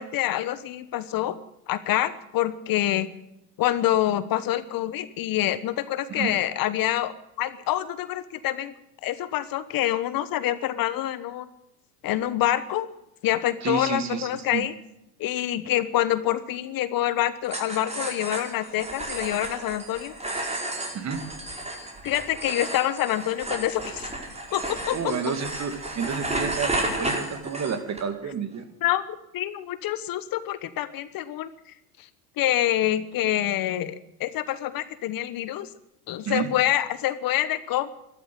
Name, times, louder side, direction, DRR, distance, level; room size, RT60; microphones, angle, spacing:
voice 1, 0.0-1.4 1.7-3.1 3.6-8.7 9.0-11.5 12.0-12.9 13.2-14.7 15.2-20.1 22.0-24.1 24.5-25.1 28.8-29.1 29.3-31.5 32.0-32.1 32.4-35.7 36.1-37.9, left 13 dB, 45° left, 14 dB, 1.2 m, -26 dB
voice 2, 13.6-14.6 20.9-21.2 24.9-26.7 27.0-28.7 36.2-36.5, right 6 dB, 35° right, 8 dB, 2.7 m, -30 dB
sound 1, 17.4-28.0, right 1 dB, 15° right, 4.7 m, -32 dB
13.5 x 13.0 x 7.9 m, 0.86 s
hypercardioid pair, 85°, 47 cm